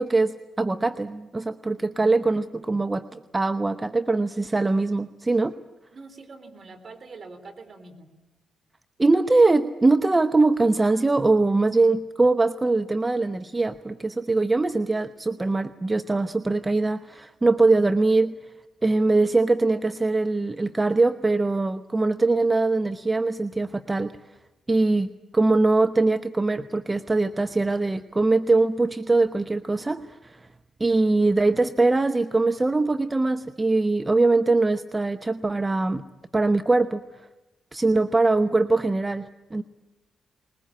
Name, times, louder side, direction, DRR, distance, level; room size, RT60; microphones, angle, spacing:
voice 1, 0.0-5.5 9.0-18.3 18.8-24.1 24.7-30.5 30.8-36.0 36.3-37.0 37.7-39.6, right 3 dB, 25° right, 10 dB, 0.9 m, -22 dB
voice 2, 5.9-8.1, right 3 dB, 50° right, 6 dB, 3.9 m, -44 dB
21.0 x 20.0 x 8.9 m, 1.0 s
hypercardioid pair, 45°, 0 cm